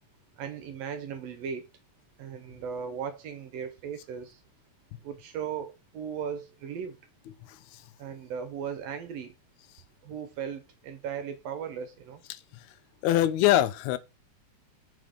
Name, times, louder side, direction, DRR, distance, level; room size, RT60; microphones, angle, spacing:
voice 1, 0.4-1.7 2.2-4.4 5.0-7.0 8.0-9.3 10.0-12.2, right 7 dB, 75° right, 1.6 m, -37 dB
voice 2, 13.0-14.0, left 13 dB, 85° left, 1.9 m, -22 dB
5.1 x 4.1 x 5.0 m
omnidirectional pair, 3.3 m